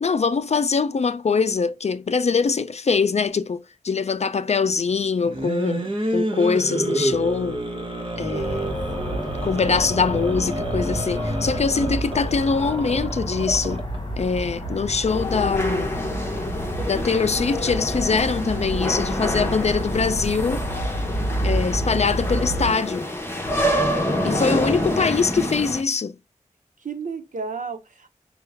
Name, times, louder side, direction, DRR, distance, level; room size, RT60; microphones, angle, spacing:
voice 1, 0.0-3.6 3.8-7.6 8.2-8.6 9.4-13.9 14.2-16.1 16.9-20.7 21.4-23.1 24.2-26.1, left 5 dB, 55° left, 0.4 m, -23 dB
sound 1, 5.2-14.0, right 1 dB, 40° right, 1.1 m, -28 dB
sound 2, 8.3-22.7, right 1 dB, 35° left, 1.4 m, -29 dB
voice 2, 8.3-9.3 9.7-9.9 24.2-25.1 26.8-28.1, right 4 dB, 75° right, 1.0 m, -33 dB
sound 3, 15.1-25.8, left 1 dB, 20° left, 1.1 m, -27 dB
5.5 x 2.3 x 3.4 m
wide cardioid pair, 75°, 13 cm